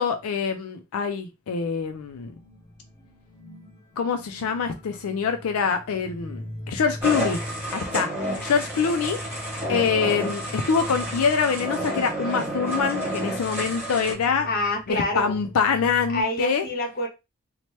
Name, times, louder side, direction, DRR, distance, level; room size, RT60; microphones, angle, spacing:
voice 1, 0.0-2.3 4.0-7.4 7.7-8.1 8.4-9.2 9.7-14.5 14.9-16.7, left 6 dB, 90° left, 0.4 m, -25 dB
sound 1, 1.6-16.2, equal, 15° left, 0.8 m, -41 dB
sound 2, 7.0-14.1, right 1 dB, 10° right, 1.2 m, -30 dB
voice 2, 14.4-15.3 16.1-17.1, left 1 dB, 45° left, 0.8 m, -26 dB
2.8 x 2.1 x 3.0 m
head